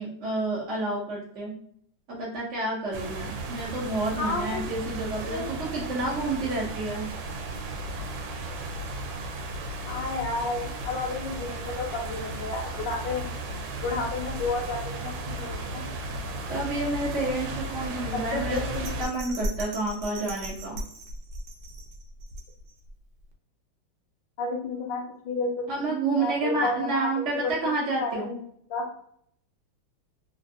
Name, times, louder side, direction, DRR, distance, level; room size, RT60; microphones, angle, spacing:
voice 1, 0.0-1.5 2.1-7.1 16.5-18.6 19.0-20.8 25.7-28.3, right 2 dB, 55° right, -6 dB, 0.8 m, -29 dB
sound 1, 2.9-19.0, right 2 dB, 90° right, 1.4 m, -35 dB
voice 2, 4.1-4.6 5.3-5.6 9.8-13.3 13.8-15.8 18.3-18.9 24.4-27.1 27.3-27.7 28.0-28.4 28.7-28.8, left 3 dB, 70° left, -3 dB, 1.3 m, -31 dB
Bell, 18.6-22.9 23.3-23.4, right 1 dB, 70° right, 1.2 m, -37 dB
3.4 x 2.5 x 2.6 m, 0.66 s
omnidirectional pair, 2.2 m